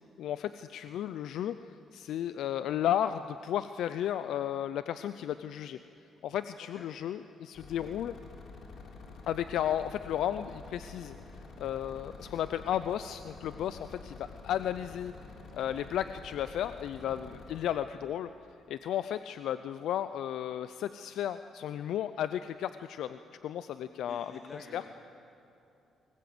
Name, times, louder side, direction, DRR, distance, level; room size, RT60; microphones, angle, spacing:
voice 1, 0.2-5.8 6.2-8.2 9.3-11.2 11.6-15.1 15.5-18.3 18.7-24.4 24.7-24.8, left 10 dB, 80° left, 11 dB, 0.5 m, -34 dB
sound 1, 7.5-17.8, left 3 dB, 60° left, 3.8 m, -49 dB
voice 2, 15.5-15.8 17.0-17.2 24.0-24.9, left 3 dB, 35° left, 2 dB, 2.4 m, -50 dB
24.5 x 20.5 x 7.9 m, 2.8 s
cardioid pair, 90°, 0 cm